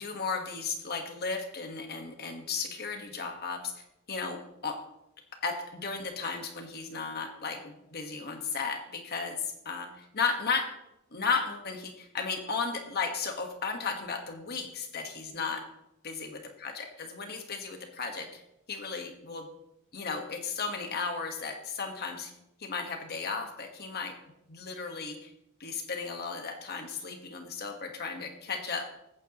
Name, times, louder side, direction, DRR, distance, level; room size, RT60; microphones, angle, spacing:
voice 1, 0.0-3.7 4.1-4.8 5.4-9.9 10.1-10.7 11.1-15.7 16.0-18.4 18.7-19.5 19.9-22.3 22.6-24.1 24.5-25.3 25.6-28.9, left 5 dB, 50° left, 4 dB, 1.3 m, -34 dB
21.0 x 9.5 x 3.0 m, 0.86 s
head